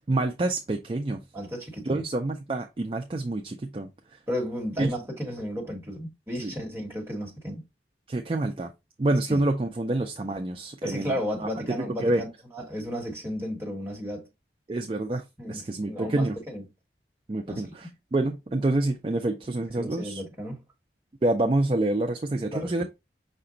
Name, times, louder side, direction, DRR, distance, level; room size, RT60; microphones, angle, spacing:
voice 1, 0.0-1.2 1.9-3.9 4.8-4.9 6.4-6.5 8.1-8.7 9.0-12.2 14.7-15.2 15.5-16.4 17.3-20.2 21.2-22.8, right 2 dB, 30° right, 0.4 m, -27 dB
voice 2, 1.3-2.0 4.3-7.6 9.3-9.4 10.8-12.3 12.5-14.3 15.4-16.6 17.5-17.9 19.8-20.6 22.5-22.8, equal, 15° right, 1.3 m, -34 dB
5.8 x 2.2 x 3.8 m
head